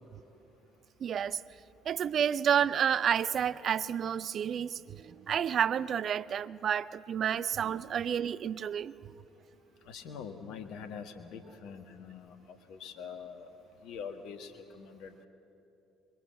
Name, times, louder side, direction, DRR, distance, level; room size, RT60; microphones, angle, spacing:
voice 1, 1.0-1.4 1.8-8.9, right 8 dB, 50° right, 17 dB, 0.5 m, -30 dB
voice 2, 9.9-13.5 13.8-15.3, left 6 dB, 65° left, 7 dB, 1.7 m, -44 dB
23.0 x 22.5 x 7.6 m, 2.8 s
figure-of-eight pair, 50°, 0 cm